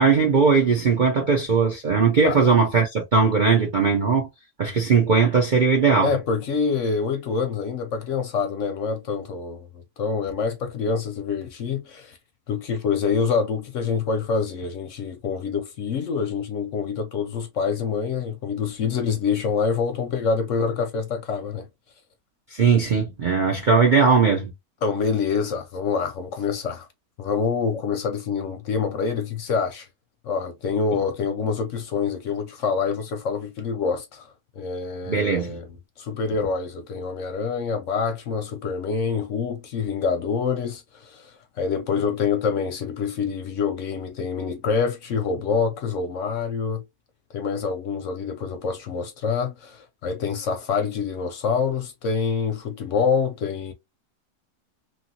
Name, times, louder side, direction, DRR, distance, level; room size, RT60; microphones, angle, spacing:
voice 1, 0.0-4.3 4.6-6.1 22.5-24.5 35.1-35.6, right 5 dB, 55° right, 0.5 m, -19 dB
voice 2, 6.0-12.2 12.5-21.7 24.8-26.9 27.2-29.9 30.2-46.8 47.3-53.7, left 5 dB, 65° left, 0.8 m, -26 dB
3.0 x 2.6 x 2.7 m
omnidirectional pair, 1.7 m